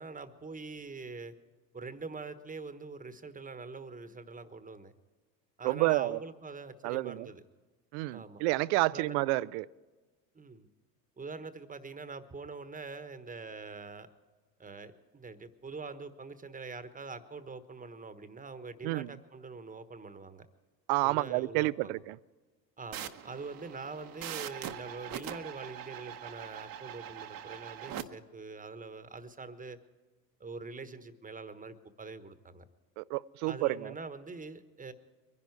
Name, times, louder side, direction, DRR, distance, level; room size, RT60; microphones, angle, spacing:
voice 1, 0.0-1.3 1.7-4.9 5.6-7.4 8.1-8.4 8.9-9.2 10.3-10.7 11.2-14.1 14.6-20.5 21.0-22.0 22.8-29.8 30.4-32.7 33.4-34.9, right 4 dB, 15° right, 12 dB, 1.2 m, -44 dB
voice 2, 5.6-6.2 6.8-7.3 7.9-9.7 18.8-19.1 20.9-22.2 33.0-33.9, right 20 dB, 65° right, 20 dB, 0.6 m, -29 dB
sound 1, 22.9-28.0, right 10 dB, 45° right, 1.0 m, -42 dB
22.5 x 11.0 x 4.7 m, 1.3 s
hypercardioid pair, 75°, 50 cm